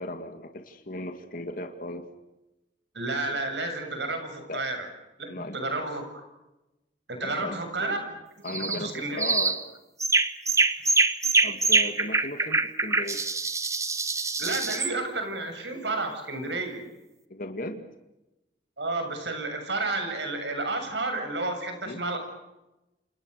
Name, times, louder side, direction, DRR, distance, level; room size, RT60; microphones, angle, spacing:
voice 1, 0.0-2.1 4.5-4.6 5.3-5.6 7.2-8.0 8.4-9.6 11.4-13.2 17.3-17.9 21.8-22.0, left 1 dB, 55° left, 6 dB, 2.1 m, -36 dB
voice 2, 2.9-4.9 5.2-6.2 7.1-8.2 8.7-9.3 14.4-16.8 18.8-22.2, right 2 dB, 85° right, 6 dB, 7.3 m, -31 dB
sound 1, 8.5-8.8 9.2-9.6 10.0-14.9, right 3 dB, 20° right, 1.4 m, -24 dB
29.0 x 27.5 x 6.7 m, 0.99 s
head